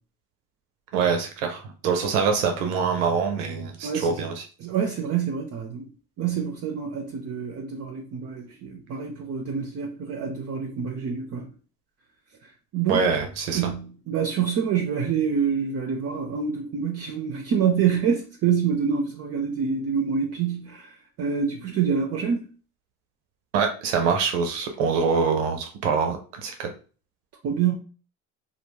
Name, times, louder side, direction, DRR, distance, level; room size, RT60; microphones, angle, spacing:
voice 1, 0.9-4.4 12.9-13.7 23.5-26.5, right 5 dB, 90° right, 0.6 m, -24 dB
voice 2, 3.8-4.2 4.6-5.9 6.2-11.5 12.7-13.1 13.5-20.9 21.2-22.5 27.4-27.8, right 7 dB, 45° right, 0.5 m, -26 dB
2.2 x 2.1 x 3.2 m
supercardioid pair, 75°, 35 cm